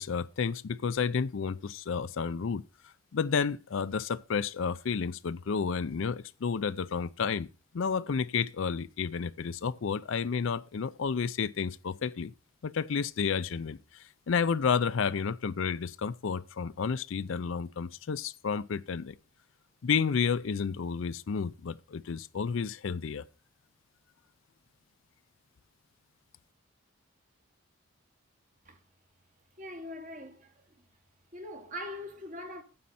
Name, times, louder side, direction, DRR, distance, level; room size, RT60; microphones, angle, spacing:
voice 1, 0.0-2.6 3.1-7.5 7.7-12.3 12.6-19.2 19.8-23.2, left 6 dB, 65° left, 0.4 m, -31 dB
voice 2, 29.6-30.9 31.3-32.6, left 1 dB, 35° right, 1.4 m, -42 dB
9.5 x 7.5 x 4.2 m
head